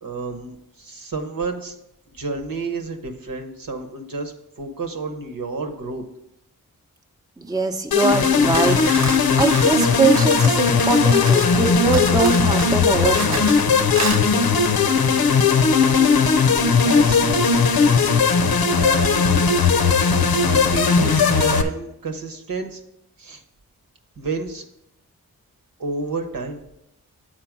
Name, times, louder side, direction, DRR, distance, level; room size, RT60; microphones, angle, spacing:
voice 1, 0.0-1.8 2.1-6.0 16.8-17.5 18.8-19.5 20.4-22.8 23.2-23.4 24.2-24.6 25.8-26.6, right 3 dB, 65° right, 5 dB, 1.1 m, -30 dB
voice 2, 7.4-8.8 9.4-13.5, right 3 dB, 10° right, 4 dB, 0.7 m, -21 dB
sound 1, 7.9-21.6, left 5 dB, 75° left, 0.7 m, -17 dB
sound 2, 8.3-11.6 11.9-13.7 14.0-14.2, right 3 dB, 45° right, 0.9 m, -31 dB
7.7 x 4.3 x 6.0 m, 0.81 s
cardioid pair, 55°, 37 cm